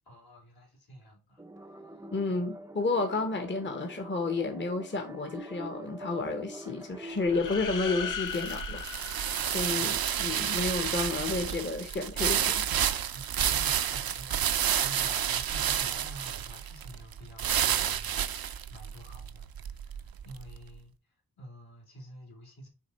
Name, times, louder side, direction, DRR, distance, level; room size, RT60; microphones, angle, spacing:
voice 1, 0.0-1.4 9.8-10.1 13.1-20.9 21.4-22.7, right 1 dB, 70° left, 3.0 m, -49 dB
sound 1, 1.4-8.1, right 1 dB, 10° right, 0.4 m, -45 dB
voice 2, 2.1-12.7, left 3 dB, 30° left, 0.9 m, -31 dB
sound 2, 7.2-10.2, left 7 dB, 55° left, 0.6 m, -38 dB
sound 3, 7.3-20.6, right 9 dB, 65° right, 0.5 m, -30 dB
6.5 x 3.6 x 4.1 m
wide cardioid pair, 110°, 38 cm